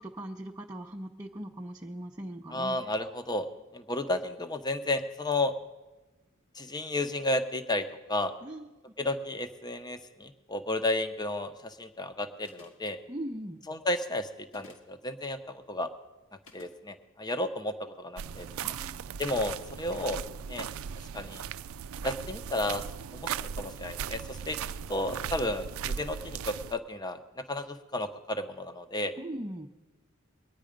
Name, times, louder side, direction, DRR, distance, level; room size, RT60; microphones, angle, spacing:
voice 1, 0.0-2.8 8.4-8.7 13.1-13.6 18.6-19.1 29.2-29.7, right 1 dB, 20° right, 1 dB, 0.6 m, -40 dB
voice 2, 2.5-3.5 3.7-5.5 6.5-8.3 9.0-13.0 13.7-15.9 16.5-18.5 19.2-20.2 20.5-20.7 21.1-21.4 22.0-22.8 23.1-24.6 24.9-29.1, left 2 dB, 20° left, 9 dB, 0.8 m, -32 dB
sound 1, 12.4-12.9 14.5-14.9 16.5-16.8, left 3 dB, 70° left, 1.8 m, -54 dB
sound 2, 18.2-26.7, right 7 dB, 80° right, 0.4 m, -38 dB
21.5 x 9.6 x 5.1 m, 1.1 s
head